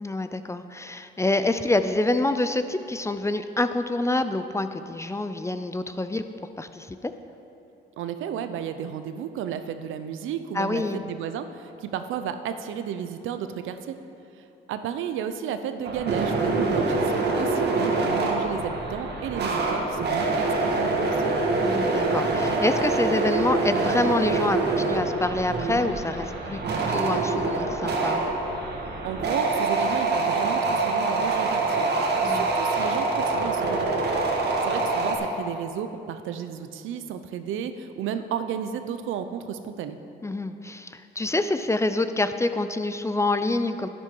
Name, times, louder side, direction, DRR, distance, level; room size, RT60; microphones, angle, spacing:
voice 1, 0.0-6.2 6.6-7.1 10.5-11.0 16.7-16.9 21.6-26.6 26.9-28.2 32.2-32.5 40.2-43.9, left 2 dB, 15° left, 10 dB, 0.5 m, -27 dB
voice 2, 8.0-14.0 14.4-21.1 29.0-31.9 32.2-34.1 34.4-40.0, right 8 dB, 85° right, 9 dB, 0.7 m, -33 dB
sound 1, 15.8-35.1, right 3 dB, 55° right, 1.7 m, -25 dB
11.0 x 10.0 x 4.7 m, 2.8 s
cardioid pair, 90°, 20 cm